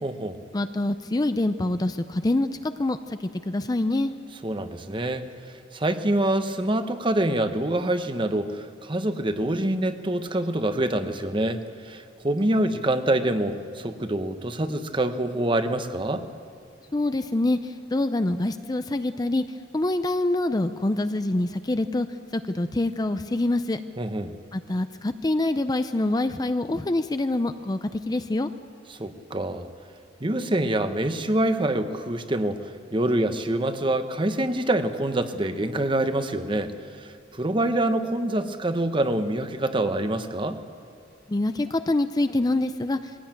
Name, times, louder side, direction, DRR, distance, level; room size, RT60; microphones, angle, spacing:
voice 1, 0.0-0.4 4.4-5.3 5.7-16.3 24.0-24.3 29.0-29.7 30.2-40.6, right 1 dB, 25° right, 9 dB, 1.0 m, -26 dB
voice 2, 0.5-4.1 16.9-19.4 19.7-22.1 22.3-23.8 24.5-28.5 41.3-43.1, left 2 dB, 20° left, 10 dB, 0.5 m, -25 dB
21.5 x 16.5 x 8.9 m, 2.3 s
head